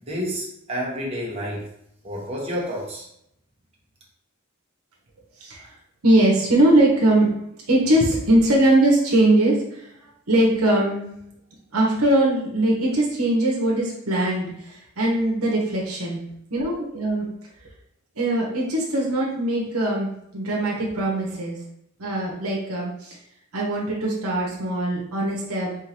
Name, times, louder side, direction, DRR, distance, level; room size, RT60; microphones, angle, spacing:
voice 1, 0.1-1.6 2.0-3.0, equal, 30° right, -4 dB, 1.1 m, -29 dB
voice 2, 5.4-5.7 6.0-7.3 7.7-9.9 10.3-11.0 11.7-16.2 16.5-17.3 18.2-21.6 22.0-23.2 23.5-25.8, right 1 dB, 75° right, -3 dB, 1.0 m, -21 dB
4.1 x 3.7 x 2.9 m, 0.76 s
head